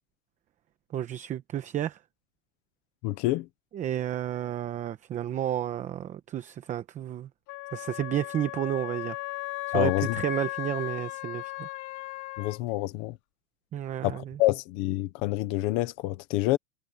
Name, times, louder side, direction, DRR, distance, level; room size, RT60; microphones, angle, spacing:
voice 1, 0.9-2.0 3.7-7.3 7.7-9.2 9.7-11.7 13.7-14.4, right 11 dB, 15° right, 0.8 m, -31 dB
voice 2, 3.0-3.5 9.7-10.2 12.4-13.1 14.0-16.6, left 17 dB, 15° left, 0.3 m, -27 dB
Wind instrument woodwind instrument, 7.5-12.6, left 25 dB, 40° left, 4.4 m, -36 dB
supercardioid pair, 155°, 46 cm